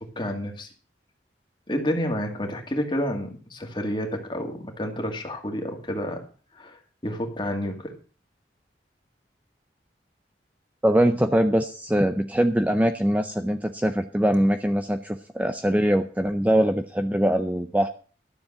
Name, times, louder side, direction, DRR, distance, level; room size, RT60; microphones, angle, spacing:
voice 1, 0.2-0.7 1.7-6.2 6.5-8.0, equal, 25° left, 4 dB, 2.1 m, -29 dB
voice 2, 10.8-17.9, equal, 10° right, 7 dB, 0.6 m, -22 dB
12.5 x 7.2 x 7.3 m, 0.41 s
head